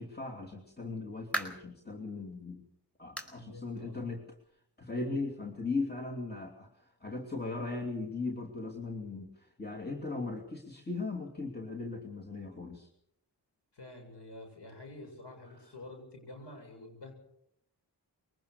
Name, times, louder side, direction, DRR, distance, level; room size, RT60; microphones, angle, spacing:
voice 1, 0.0-2.6 3.0-4.2 4.8-12.9, left 3 dB, 25° left, 1 dB, 2.9 m, -38 dB
sound 1, 0.7-1.8 2.3-2.4 3.2-3.4 3.7-3.8 4.4-4.5 5.5-5.6, right 1 dB, 5° left, 4.6 m, -38 dB
voice 2, 3.4-4.0 4.9-5.1 13.7-17.1, left 2 dB, 75° left, 3 dB, 7.9 m, -48 dB
23.0 x 19.0 x 6.7 m, 0.76 s
cardioid pair, 50°, 41 cm